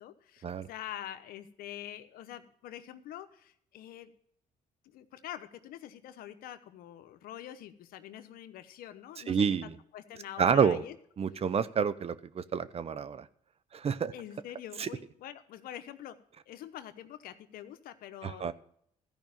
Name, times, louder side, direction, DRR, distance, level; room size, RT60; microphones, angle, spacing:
voice 1, 0.0-4.1 4.8-10.9 11.3-11.4 14.1-16.2 16.5-18.5, left 11 dB, 80° left, 10 dB, 1.0 m, -45 dB
voice 2, 9.3-9.7 10.4-10.8 11.2-13.3 13.7-14.1 14.8-14.9 18.2-18.5, right 7 dB, 40° right, 15 dB, 0.7 m, -28 dB
14.5 x 5.2 x 9.0 m, 0.67 s
cardioid pair, 80°, 15 cm